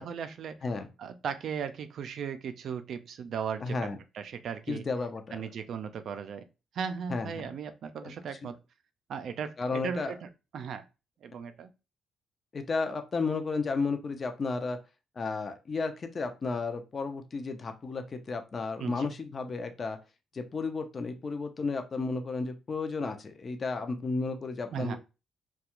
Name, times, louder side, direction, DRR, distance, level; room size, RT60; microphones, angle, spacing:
voice 1, 0.0-0.5 1.0-3.8 4.2-4.8 5.3-6.4 6.7-8.6 9.1-10.8 11.2-11.7 18.8-19.1 24.7-25.0, right 7 dB, 65° right, 9 dB, 0.4 m, -37 dB
voice 2, 3.6-4.0 4.7-5.4 7.1-7.5 8.0-8.5 9.6-10.1 12.5-14.8 15.2-20.0 20.3-25.0, left 4 dB, 40° left, 7 dB, 0.5 m, -33 dB
2.4 x 2.2 x 2.9 m, 0.28 s
cardioid pair, 90°, 0 cm